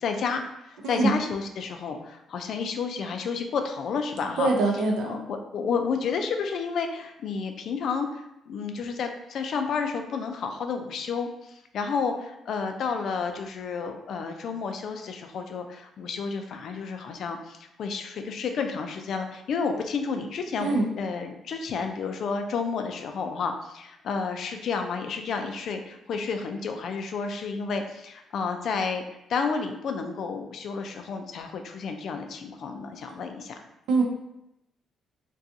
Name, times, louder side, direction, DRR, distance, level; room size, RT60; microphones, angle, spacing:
voice 1, 0.0-4.5 5.1-29.0 29.3-33.6, left 5 dB, 65° left, 5 dB, 0.3 m, -31 dB
voice 2, 0.8-1.2 4.4-5.2 20.6-20.9 33.9-34.0, right 3 dB, 80° right, 1 dB, 0.5 m, -23 dB
2.5 x 2.2 x 2.7 m, 0.85 s
cardioid pair, 90°, 0 cm